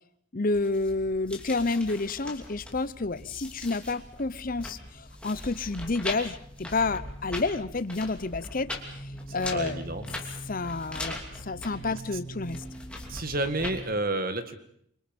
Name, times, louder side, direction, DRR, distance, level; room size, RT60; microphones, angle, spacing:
voice 1, 0.3-8.7 9.3-9.8 10.5-11.2 11.4-12.6, left 3 dB, 40° left, 15 dB, 0.8 m, -29 dB
sound 1, 0.5-13.8, left 1 dB, 5° left, 2.9 m, -40 dB
voice 2, 9.5-10.2 11.9-12.0 13.1-14.6, right 2 dB, 45° right, 9 dB, 1.9 m, -30 dB
27.0 x 25.0 x 5.4 m, 0.67 s
head